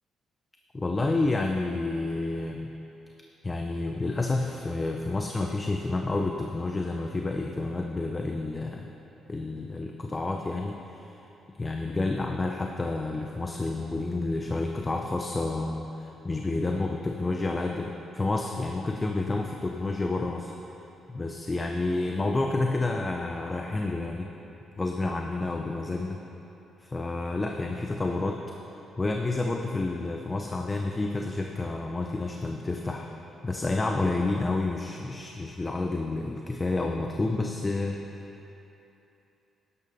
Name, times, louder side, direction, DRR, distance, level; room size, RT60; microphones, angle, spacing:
voice 1, 0.7-2.7 3.4-8.9 9.3-11.2 11.5-20.5 21.1-24.3 24.8-26.2 26.8-28.4 29.0-33.1 33.4-38.0, left 2 dB, 25° left, 2 dB, 0.7 m, -29 dB
12.0 x 11.0 x 4.2 m, 3.0 s
cardioid pair, 90°, 0 cm